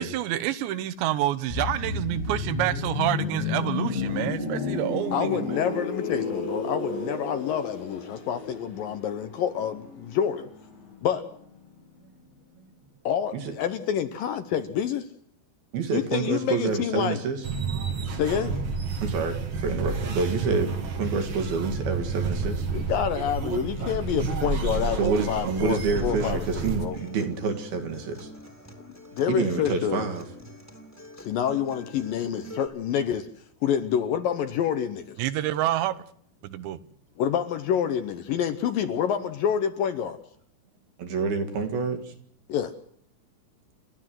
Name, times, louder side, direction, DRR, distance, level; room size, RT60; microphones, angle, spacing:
voice 1, 0.0-5.6 35.2-36.0 36.4-36.8, right 13 dB, 85° right, 3.2 m, -28 dB
sound 1, 1.5-11.2 11.4-11.7, left 3 dB, 90° left, 7.9 m, -32 dB
voice 2, 5.1-10.5 11.0-11.2 13.0-15.0 15.9-17.2 18.2-18.6 22.7-27.0 29.2-30.0 31.2-33.3 33.6-35.2 37.2-40.2 42.5-42.7, left 9 dB, 70° left, 2.3 m, -27 dB
voice 3, 15.7-17.4 19.0-22.7 25.0-28.3 29.3-30.3 41.0-42.2, right 4 dB, 65° right, 3.8 m, -28 dB
sound 2, 17.4-26.9, right 4 dB, 45° right, 1.7 m, -30 dB
Acoustic guitar, 24.7-32.7, left 1 dB, 5° left, 2.1 m, -44 dB
29.5 x 12.5 x 7.7 m
omnidirectional pair, 5.0 m